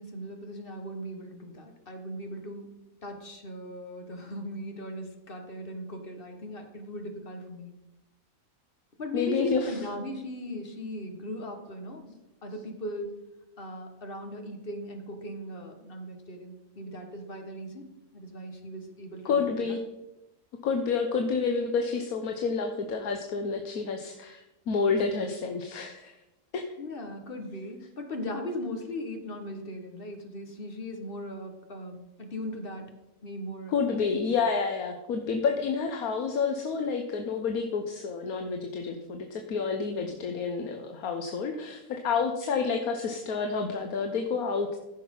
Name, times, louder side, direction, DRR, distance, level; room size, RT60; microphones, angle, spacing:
voice 1, 0.0-2.7 3.0-7.7 9.0-12.2 12.4-13.1 13.6-19.8 26.8-32.9 33.2-33.7, equal, 40° left, 4 dB, 1.6 m, -38 dB
voice 2, 9.1-9.7 19.2-19.8 20.6-26.2 26.5-26.6 33.7-44.8, left 5 dB, 85° left, 5 dB, 1.4 m, -29 dB
15.0 x 6.0 x 5.4 m, 0.97 s
omnidirectional pair, 1.5 m